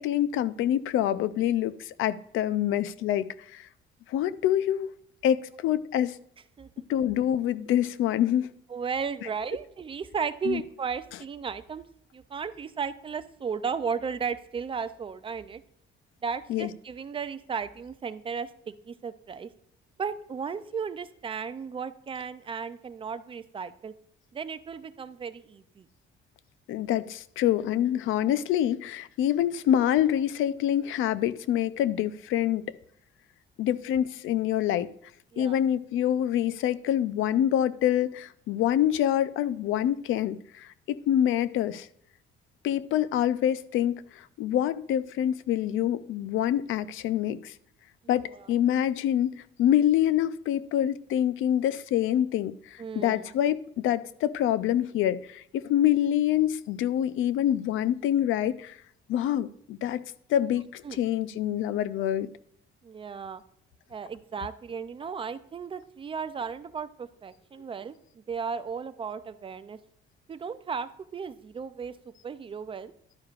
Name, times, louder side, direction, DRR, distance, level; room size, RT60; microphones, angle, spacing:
voice 1, 0.0-3.7 4.1-4.9 5.2-6.2 6.9-8.5 10.5-10.6 16.5-16.7 26.7-32.6 33.6-34.9 35.4-41.9 42.6-47.5 48.1-58.8 59.1-60.0 60.3-62.3, left 11 dB, 75° left, 0.5 m, -26 dB
voice 2, 8.7-11.8 12.1-15.6 16.2-19.5 20.0-23.9 24.3-25.9 35.3-35.6 48.3-48.5 52.8-53.3 60.8-61.0 62.8-63.4 63.9-69.8 70.3-72.0 72.2-72.9, right 6 dB, 25° right, 0.4 m, -35 dB
11.5 x 9.5 x 2.4 m
cardioid pair, 155°, 21 cm